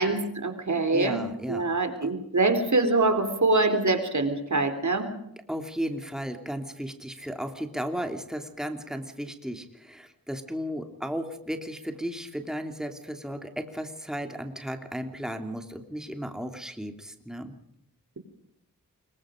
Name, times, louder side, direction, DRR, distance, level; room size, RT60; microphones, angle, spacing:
voice 1, 0.0-5.1, right 3 dB, 55° right, 8 dB, 3.7 m, -24 dB
voice 2, 0.9-1.7 2.0-2.1 5.5-17.5, equal, ahead, 5 dB, 3.0 m, -35 dB
26.0 x 23.0 x 5.1 m, 0.80 s
cardioid pair, 55°, 35 cm